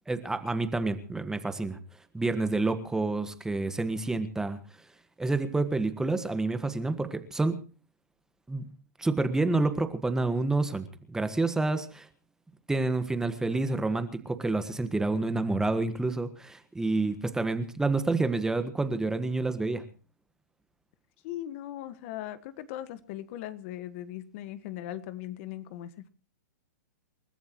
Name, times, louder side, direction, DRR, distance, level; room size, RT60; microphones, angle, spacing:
voice 1, 0.1-1.8 2.1-4.6 5.2-7.6 8.5-8.7 9.0-12.1 12.7-19.8, right 3 dB, 5° right, 10 dB, 1.5 m, -28 dB
voice 2, 21.2-26.1, left 13 dB, 45° left, 13 dB, 1.5 m, -39 dB
29.0 x 14.0 x 3.0 m, 0.35 s
hypercardioid pair, 140°, 9 cm